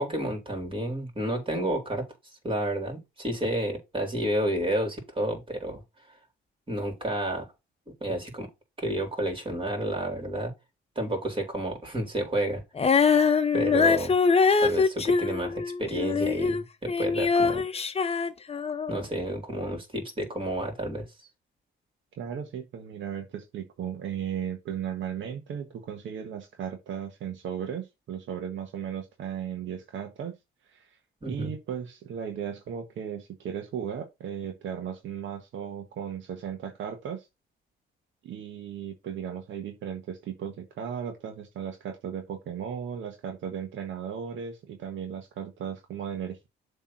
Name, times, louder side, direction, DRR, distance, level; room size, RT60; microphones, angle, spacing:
voice 1, 0.0-2.0 2.4-5.8 6.7-7.4 8.0-8.5 8.8-10.5 11.0-12.6 13.5-14.1 14.6-17.6 18.9-21.0 31.2-31.5, right 1 dB, 25° right, 3.8 m, -30 dB
Female singing, 12.8-16.6 16.9-19.0, left 5 dB, 30° left, 0.9 m, -23 dB
voice 2, 22.2-30.3 30.7-31.0 31.2-37.3 38.2-46.5, right 8 dB, 75° right, 1.4 m, -36 dB
7.3 x 3.5 x 5.8 m
cardioid pair, 90°, 20 cm